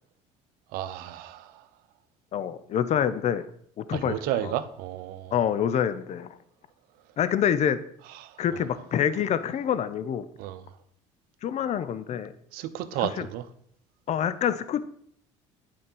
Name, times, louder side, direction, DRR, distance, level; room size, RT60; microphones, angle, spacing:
voice 1, 0.7-1.6 3.9-5.4 8.1-8.6 10.4-10.6 12.5-13.5, right 12 dB, 70° right, 0.7 m, -33 dB
voice 2, 2.3-3.5 3.8-4.5 5.3-6.3 7.2-7.8 8.4-10.3 11.4-12.3 13.0-13.3 14.1-14.8, left 9 dB, 45° left, 0.6 m, -26 dB
8.7 x 4.7 x 5.4 m
hypercardioid pair, 70°, 16 cm